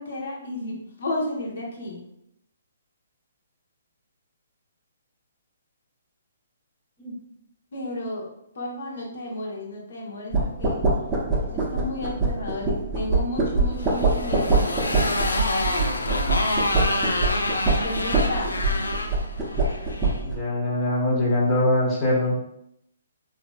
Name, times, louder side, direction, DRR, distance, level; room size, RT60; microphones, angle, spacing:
voice 1, 0.0-2.0 7.7-8.3 8.5-10.9 11.4-14.7 17.7-18.6, left 1 dB, 65° left, -2 dB, 0.9 m, -32 dB
sound 1, 10.3-20.4, right 3 dB, 15° right, 0.7 m, -24 dB
Motorcycle, 13.7-20.2, left 2 dB, 90° left, 0.4 m, -27 dB
voice 2, 20.2-22.4, left 1 dB, 20° left, -5 dB, 0.9 m, -23 dB
3.1 x 2.6 x 2.3 m, 0.77 s
hypercardioid pair, 140°, 0 cm